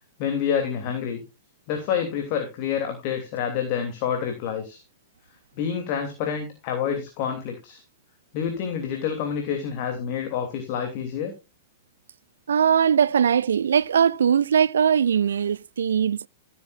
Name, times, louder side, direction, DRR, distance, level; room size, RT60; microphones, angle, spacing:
voice 1, 0.2-1.2 1.7-4.8 5.5-7.8 8.3-11.3, left 8 dB, 40° left, 3.0 m, -28 dB
voice 2, 12.5-16.3, right 8 dB, 65° right, 0.4 m, -20 dB
15.0 x 9.2 x 2.6 m
figure-of-eight pair, 105°, 0 cm